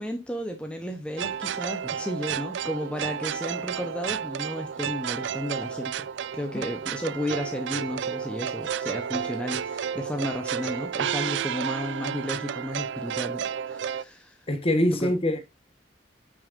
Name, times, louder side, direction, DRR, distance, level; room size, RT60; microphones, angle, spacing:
voice 1, 0.0-6.1 6.3-14.4 14.9-15.1, equal, 5° left, 0.8 m, -33 dB
sound 1, 1.2-14.0, right 8 dB, 80° right, 0.4 m, -32 dB
voice 2, 14.5-15.4, left 1 dB, 30° left, 1.3 m, -24 dB
8.7 x 6.3 x 2.6 m
head